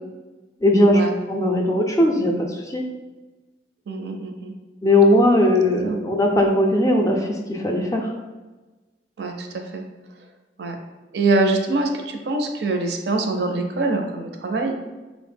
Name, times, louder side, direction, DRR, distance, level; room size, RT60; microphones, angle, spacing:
voice 1, 0.6-1.0 1.3-2.8 4.8-8.1, left 1 dB, 20° left, 1 dB, 0.4 m, -18 dB
voice 2, 3.9-4.5 5.8-6.0 9.2-9.8 10.6-10.8 11.1-14.7, right 2 dB, 65° right, 4 dB, 0.5 m, -24 dB
3.9 x 2.0 x 3.3 m, 1.2 s
head